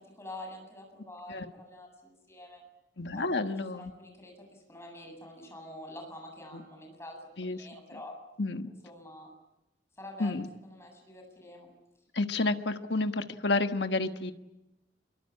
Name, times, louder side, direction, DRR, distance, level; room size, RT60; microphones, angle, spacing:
voice 1, 0.0-2.6 3.1-3.4 3.7-8.1 8.6-9.3 10.0-11.7, left 1 dB, 15° left, 2 dB, 7.8 m, -47 dB
voice 2, 3.0-3.9 7.4-7.6 8.4-8.7 10.2-10.5 12.1-14.3, left 2 dB, 75° left, 8 dB, 1.4 m, -30 dB
25.5 x 23.0 x 8.7 m, 0.95 s
head